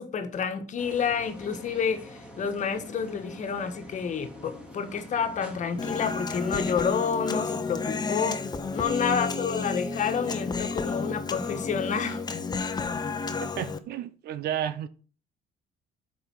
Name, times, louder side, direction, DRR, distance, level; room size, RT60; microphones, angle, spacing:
voice 1, 0.0-2.1 2.4-8.4 8.7-12.2, left 6 dB, 45° left, 1.5 m, -29 dB
sound 1, 0.8-6.7, left 1 dB, 5° right, 3.0 m, -45 dB
Human voice, 5.8-13.8, left 4 dB, 25° left, 1.0 m, -31 dB
voice 2, 13.4-14.9, right 10 dB, 70° right, 0.9 m, -32 dB
7.9 x 5.4 x 6.1 m
cardioid pair, 110°, 17 cm